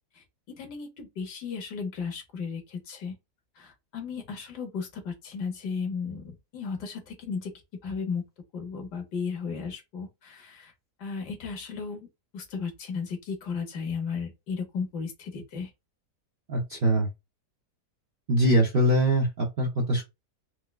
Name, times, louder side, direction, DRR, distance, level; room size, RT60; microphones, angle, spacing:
voice 1, 0.6-3.1 3.6-6.2 6.5-7.5 7.8-8.2 8.5-10.7 11.0-12.1 12.3-15.7, left 5 dB, 85° left, 1.6 m, -34 dB
voice 2, 16.5-17.1 18.3-20.0, right 1 dB, 60° right, 0.5 m, -23 dB
4.5 x 2.1 x 2.2 m
omnidirectional pair, 1.8 m